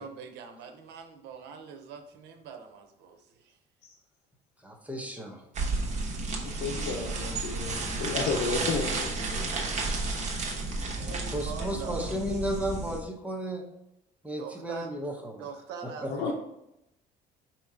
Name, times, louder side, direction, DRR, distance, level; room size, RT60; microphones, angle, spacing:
voice 1, 0.0-3.6 11.0-12.1 14.4-14.9 15.4-16.3, right 6 dB, 85° right, 6 dB, 0.7 m, -43 dB
voice 2, 4.6-5.4 11.3-13.6 14.2-15.4 16.0-16.1, equal, 10° right, 1 dB, 0.8 m, -33 dB
sound 1, 5.5-13.0, right 3 dB, 45° right, 1.1 m, -32 dB
voice 3, 6.3-10.2 11.6-11.7 16.1-16.3, left 4 dB, 85° left, 0 dB, 0.6 m, -33 dB
5.1 x 2.9 x 3.6 m, 0.83 s
cardioid pair, 110°, 17 cm